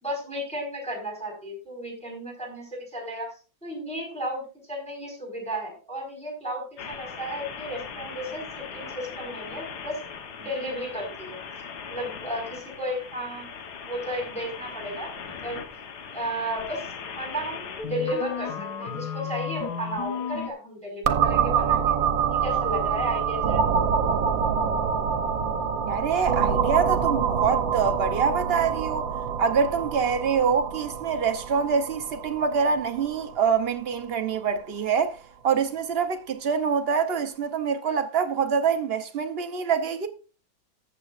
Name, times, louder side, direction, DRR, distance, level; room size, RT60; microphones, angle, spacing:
voice 1, 0.0-3.3 3.6-10.0 10.4-11.4 11.9-13.5 13.8-15.6 16.1-16.9 17.2-21.9 22.3-23.8, equal, 5° left, 4.6 m, -33 dB
sound 1, 6.8-20.5, left 6 dB, 60° left, 1.5 m, -37 dB
sound 2, 21.1-34.6, right 7 dB, 70° right, 1.7 m, -26 dB
voice 2, 25.9-29.0 29.4-35.2 35.4-40.1, right 6 dB, 55° right, 0.6 m, -25 dB
14.5 x 8.1 x 2.5 m
omnidirectional pair, 2.2 m